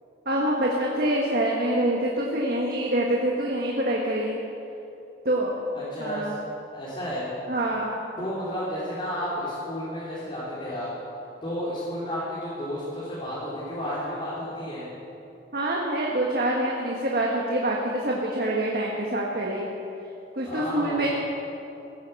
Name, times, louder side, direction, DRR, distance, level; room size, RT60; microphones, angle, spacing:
voice 1, 0.2-4.4 5.2-5.5 6.0-6.3 7.5-8.0 15.5-19.7 20.3-21.1, right 1 dB, 55° right, -2 dB, 1.6 m, -26 dB
voice 2, 5.7-6.3 6.7-7.2 8.2-10.9 11.4-14.9 20.4-21.1, equal, 30° left, -9 dB, 3.4 m, -32 dB
17.0 x 9.6 x 7.1 m, 2.8 s
head